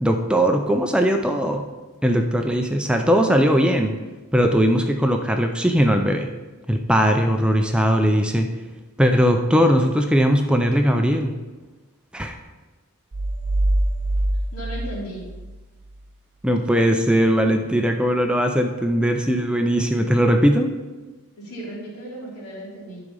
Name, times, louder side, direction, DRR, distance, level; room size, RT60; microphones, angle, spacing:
voice 1, 0.0-1.7 2.0-3.9 4.3-6.3 6.7-8.5 9.0-11.3 12.1-12.4 16.4-20.7, equal, 5° right, 4 dB, 0.5 m, -19 dB
sound 1, 13.1-16.0, right 1 dB, 50° right, 0.7 m, -24 dB
voice 2, 14.5-15.2 21.4-23.0, right 1 dB, 80° left, -5 dB, 3.4 m, -35 dB
11.0 x 4.9 x 5.4 m, 1.2 s
head